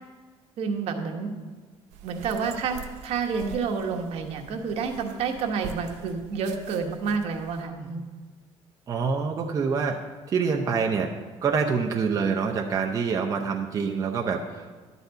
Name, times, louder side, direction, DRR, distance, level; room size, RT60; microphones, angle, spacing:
voice 1, 0.6-1.3 2.0-2.8 3.0-8.0, right 5 dB, 60° right, 3 dB, 1.2 m, -29 dB
sound 1, 1.9-7.7, right 7 dB, 85° right, 0.7 m, -44 dB
voice 2, 8.9-10.0 10.3-11.1 11.4-14.8, right 5 dB, 30° right, 1 dB, 0.6 m, -26 dB
11.5 x 4.1 x 8.1 m, 1.4 s
cardioid pair, 160°, 12 cm